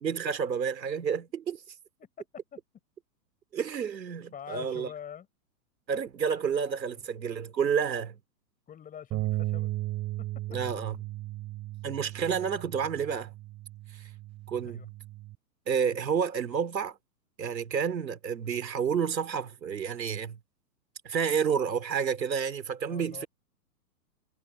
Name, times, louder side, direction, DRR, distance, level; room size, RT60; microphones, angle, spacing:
voice 1, 0.0-1.6 3.5-4.9 5.9-8.2 10.5-11.0 11.8-13.3 13.9-14.1 14.5-14.9 15.7-17.0 17.4-20.4 21.0-23.3, right 7 dB, 90° right, 3.5 m, -30 dB
voice 2, 2.0-2.6 4.3-5.3 8.7-9.7 10.2-10.6 14.6-14.8 22.9-23.3, left 9 dB, 15° left, 4.4 m, -45 dB
Bass guitar, 9.1-15.4, right 17 dB, 30° right, 3.5 m, -36 dB
hypercardioid pair, 135°, 49 cm